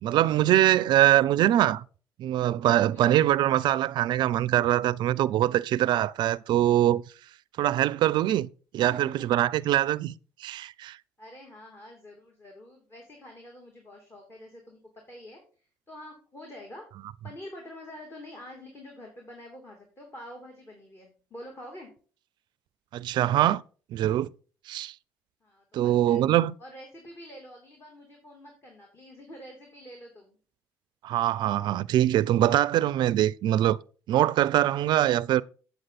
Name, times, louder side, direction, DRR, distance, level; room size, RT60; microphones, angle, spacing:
voice 1, 0.0-1.8 2.2-7.0 7.6-10.1 10.4-11.0 22.9-23.6 23.9-24.3 24.7-24.9 25.7-26.5 31.0-33.8 34.1-35.4, right 13 dB, 65° right, 0.4 m, -23 dB
voice 2, 8.8-9.3 9.6-9.7 11.2-16.8 17.2-21.9 25.4-26.2 26.6-30.4, left 1 dB, 30° left, 2.9 m, -47 dB
8.1 x 7.9 x 4.1 m
supercardioid pair, 65°, 8 cm